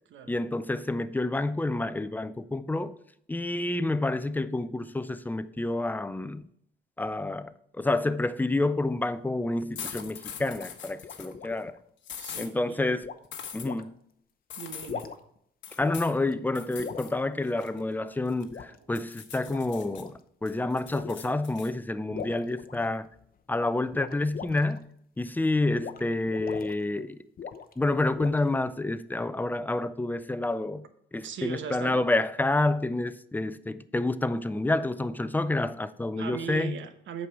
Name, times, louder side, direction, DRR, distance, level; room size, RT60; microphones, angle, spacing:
voice 1, 0.3-2.9 3.3-6.4 7.0-11.8 12.4-13.1 13.5-13.9 15.8-23.1 23.5-24.9 25.2-27.2 27.8-30.8 31.1-36.7, left 2 dB, 10° left, 0.5 m, -29 dB
sound 1, 9.5-11.8 13.0-13.3 13.6-13.8 14.7-15.4 15.8-16.3 16.8-17.1 18.5-18.8 19.3-20.2 20.9-21.3 22.1-23.3 23.9-24.8 25.8-26.0 26.3-26.7 27.4-27.8 28.1-28.6, left 7 dB, 45° left, 0.8 m, -41 dB
sound 2, 9.8-11.3 12.0-12.5 13.3-13.7 14.5-15.1 15.6-16.2 16.6-17.1 17.5-18.6 19.0-20.0 20.5-21.7, left 8 dB, 70° left, 1.1 m, -42 dB
voice 2, 12.2-12.8 14.6-15.1 18.7-18.8 31.2-32.0 36.2-37.3, right 7 dB, 70° right, 1.1 m, -38 dB
8.4 x 5.6 x 4.6 m
cardioid pair, 90°, 20 cm